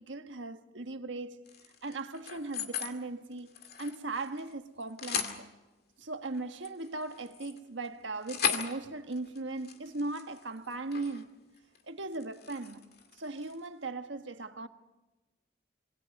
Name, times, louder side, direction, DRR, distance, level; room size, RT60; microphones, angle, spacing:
voice 1, 0.0-1.5 1.8-3.5 3.8-5.5 6.0-11.4 11.8-14.7, right 2 dB, 80° right, 1.4 m, -38 dB
sound 1, 1.5-2.9 3.3-4.5 4.8-5.4 6.3-11.3 11.6-11.8 12.1-13.7, left 7 dB, 55° left, 2.3 m, -38 dB
26.5 x 23.5 x 5.4 m
head